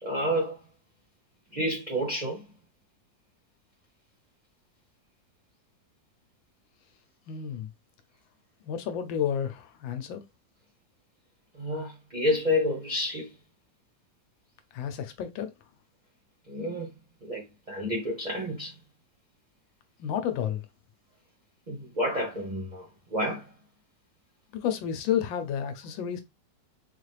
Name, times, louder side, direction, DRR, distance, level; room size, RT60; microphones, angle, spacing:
voice 1, 0.0-0.6 1.5-2.4 11.6-13.3 16.5-16.9 17.2-17.4 17.7-18.7 21.7-23.5, left 1 dB, 30° right, 1.0 m, -29 dB
voice 2, 7.3-7.7 8.6-10.2 14.7-15.5 20.0-20.6 24.5-26.2, left 9 dB, 90° left, 1.5 m, -31 dB
4.3 x 2.5 x 3.2 m
omnidirectional pair, 2.0 m